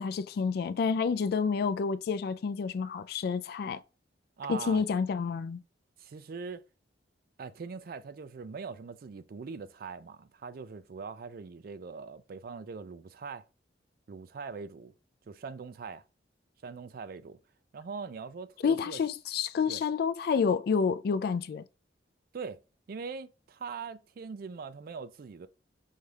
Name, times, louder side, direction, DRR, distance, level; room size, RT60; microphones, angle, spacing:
voice 1, 0.0-3.8 4.5-5.6 18.6-21.6, left 5 dB, 60° left, 0.3 m, -29 dB
voice 2, 4.4-4.8 6.0-6.6 7.4-13.4 14.1-14.9 15.3-16.0 16.6-17.4 17.7-19.0 19.7-19.8 22.3-22.6 22.9-25.5, right 5 dB, 55° right, 0.4 m, -41 dB
5.5 x 2.3 x 3.3 m
head